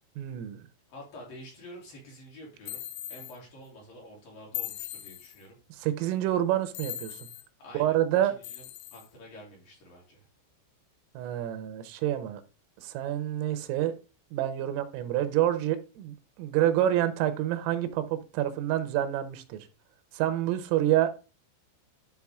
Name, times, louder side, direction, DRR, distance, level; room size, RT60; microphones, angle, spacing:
voice 1, 0.2-0.6 5.8-7.3 7.8-8.3 11.2-12.4 12.8-13.9 14.3-19.7 20.1-21.1, right 12 dB, 90° right, 3.6 m, -28 dB
voice 2, 0.9-2.8 3.1-5.6 7.6-8.0 8.2-10.3, equal, 50° left, 4.0 m, -48 dB
sound 1, 2.7-3.4 4.5-5.4 6.7-7.5 8.4-9.1, left 13 dB, 85° left, 3.1 m, -39 dB
12.0 x 4.9 x 3.6 m
omnidirectional pair, 5.8 m